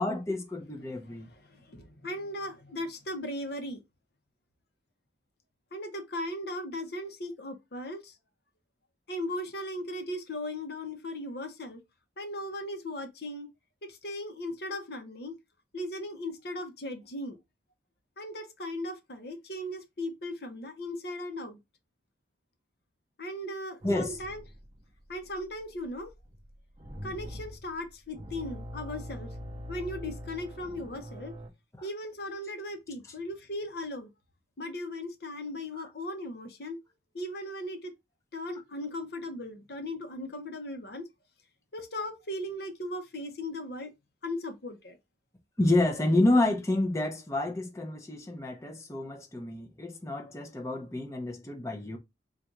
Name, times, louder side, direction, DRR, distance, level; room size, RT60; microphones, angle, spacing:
voice 1, 0.0-1.3 23.8-24.2 35.8-35.9 45.6-52.0, left 2 dB, 15° left, 0.7 m, -29 dB
voice 2, 1.2-3.8 5.7-8.2 9.1-11.8 12.2-13.5 13.8-15.3 15.7-17.4 18.2-21.6 23.2-24.4 25.1-26.1 27.0-29.4 29.7-31.3 31.8-34.1 34.6-36.8 37.1-37.9 38.3-41.0 41.7-43.9 44.2-45.0, left 1 dB, 65° left, 0.9 m, -37 dB
sound 1, 23.8-31.5, equal, 30° right, 0.7 m, -43 dB
3.9 x 2.6 x 4.5 m
head